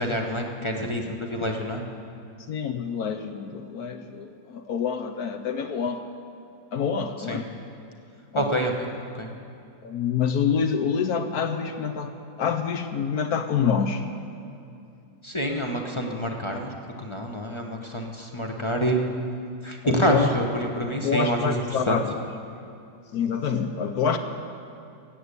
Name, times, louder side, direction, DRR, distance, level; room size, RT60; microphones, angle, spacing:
voice 1, 0.0-1.8 7.3-7.4 8.3-8.9 9.1-9.3 15.2-16.7 17.0-19.0 19.6-21.4 21.9-22.0, equal, 30° left, 2 dB, 0.6 m, -27 dB
voice 2, 2.5-6.0 6.7-7.5 8.3-8.5 9.8-12.1 12.4-14.1 19.8-20.3 20.9-22.3 23.1-24.2, left 6 dB, 65° left, 7 dB, 1.1 m, -26 dB
16.5 x 7.8 x 8.3 m, 2.6 s
omnidirectional pair, 2.0 m